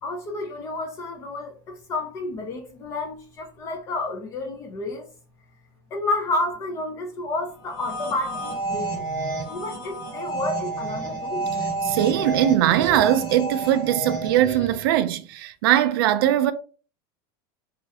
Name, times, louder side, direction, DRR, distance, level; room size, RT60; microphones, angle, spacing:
voice 1, 0.0-5.1 5.9-9.0 9.5-11.5, left 2 dB, 20° left, 0.4 m, -30 dB
sound 1, 7.6-14.9, right 3 dB, 40° left, 1.1 m, -30 dB
voice 2, 11.9-16.5, right 12 dB, 70° right, 0.4 m, -20 dB
3.1 x 2.4 x 2.7 m
supercardioid pair, 180°, 13 cm